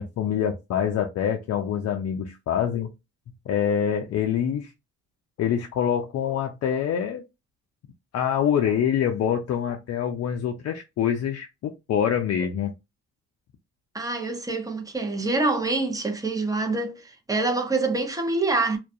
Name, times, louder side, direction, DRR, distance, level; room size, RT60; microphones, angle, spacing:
voice 1, 0.0-2.9 3.5-4.7 5.4-7.2 8.1-12.7, left 8 dB, 55° left, 0.4 m, -25 dB
voice 2, 13.9-18.8, right 3 dB, 10° right, 0.7 m, -26 dB
2.3 x 2.2 x 2.6 m
cardioid pair, 90°, 30 cm